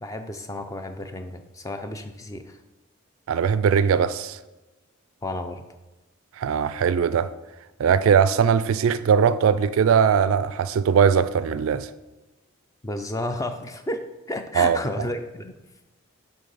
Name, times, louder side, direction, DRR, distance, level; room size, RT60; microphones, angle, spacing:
voice 1, 0.0-2.6 5.2-5.6 12.8-15.6, left 1 dB, 15° left, 0.4 m, -32 dB
voice 2, 3.3-4.4 6.4-7.3 7.8-11.9 14.6-14.8, right 7 dB, 70° right, 0.3 m, -20 dB
8.5 x 3.6 x 4.0 m
head